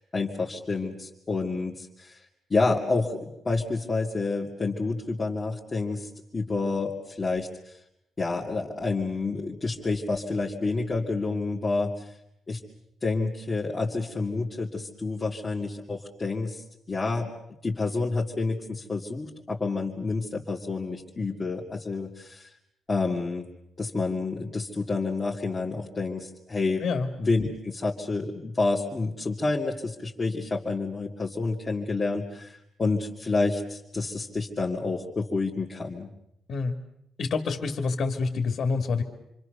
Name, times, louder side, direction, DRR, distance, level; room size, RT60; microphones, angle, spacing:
voice 1, 0.0-2.1 2.5-7.7 8.2-11.9 12.5-12.6 13.0-17.3 17.6-22.5 22.9-23.5 23.8-26.8 27.2-36.1, left 3 dB, 25° left, -5 dB, 2.6 m, -29 dB
voice 2, 37.2-39.0, left 4 dB, 55° left, 5 dB, 2.5 m, -27 dB
27.5 x 25.0 x 6.8 m, 0.79 s
cardioid pair, 125°, 0 cm